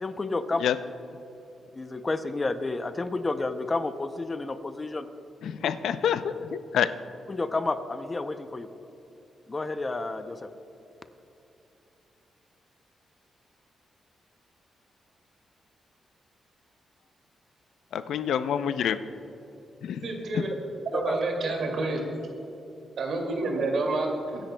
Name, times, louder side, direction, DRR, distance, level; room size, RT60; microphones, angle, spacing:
voice 1, 0.0-0.6 1.7-5.1 7.3-8.7 9.5-10.5 20.9-21.2, left 3 dB, 25° left, 9 dB, 0.5 m, -30 dB
voice 2, 5.4-6.2 6.5-6.9 17.9-19.0 19.8-20.0 20.3-20.4, left 9 dB, 85° left, 12 dB, 0.5 m, -27 dB
voice 3, 20.0-20.5 20.9-22.0 23.0-24.4, right 3 dB, 70° right, 1 dB, 2.3 m, -28 dB
23.5 x 10.0 x 2.2 m, 2.9 s
cardioid pair, 130°, 0 cm